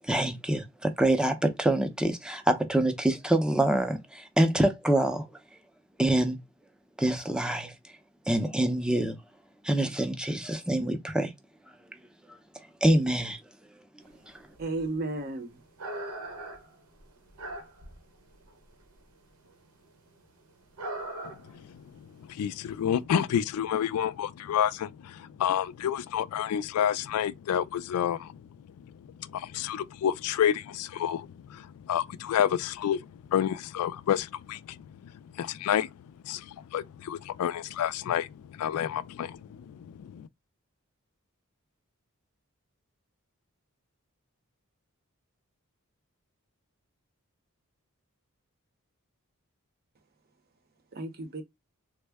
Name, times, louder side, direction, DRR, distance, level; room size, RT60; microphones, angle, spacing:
voice 1, 0.0-5.3 6.0-6.4 7.0-7.7 8.3-9.2 9.6-11.3 12.8-13.4, right 1 dB, 5° right, 0.5 m, -25 dB
sound 1, 14.2-14.3 14.5-15.2 15.6-18.1 18.3-19.1 19.4-19.5 19.9-20.0 20.8-21.6 21.9-22.0 22.7-22.8, right 1 dB, 80° right, 0.9 m, -40 dB
voice 2, 14.6-15.6 50.9-51.4, right 2 dB, 45° right, 0.7 m, -33 dB
voice 3, 21.5-28.4 28.8-40.3, left 9 dB, 75° left, 0.3 m, -30 dB
3.5 x 2.0 x 3.4 m
head